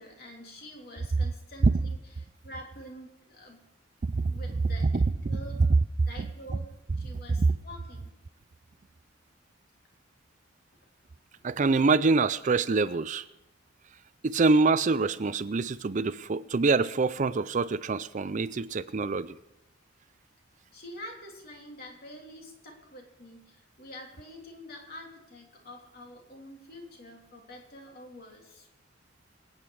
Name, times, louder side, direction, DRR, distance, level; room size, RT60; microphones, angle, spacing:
voice 1, 0.0-2.0 2.4-3.6 4.3-5.5 6.1-6.7 7.0-8.1 20.7-28.7, left 1 dB, 50° left, 1 dB, 3.2 m, -46 dB
voice 2, 4.9-5.4 7.4-7.5 11.4-13.2 14.2-19.4, right 3 dB, 40° right, 15 dB, 0.4 m, -25 dB
25.5 x 9.0 x 4.8 m, 0.91 s
head